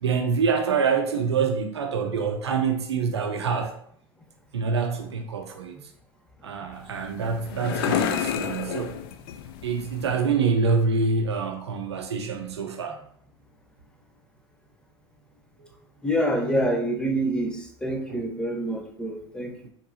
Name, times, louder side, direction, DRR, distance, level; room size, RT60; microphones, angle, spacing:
voice 1, 0.0-3.8 4.5-5.7 6.4-8.9 9.6-13.0 15.6-15.7 18.1-18.2 19.6-19.7, right 5 dB, 85° right, 4 dB, 0.5 m, -26 dB
sound 1, 6.7-10.3, left 9 dB, 60° left, 0.5 m, -30 dB
voice 2, 16.0-17.5 17.8-19.5, right 1 dB, 5° left, 2 dB, 0.9 m, -26 dB
4.6 x 3.5 x 2.7 m, 0.65 s
hypercardioid pair, 85°, 14 cm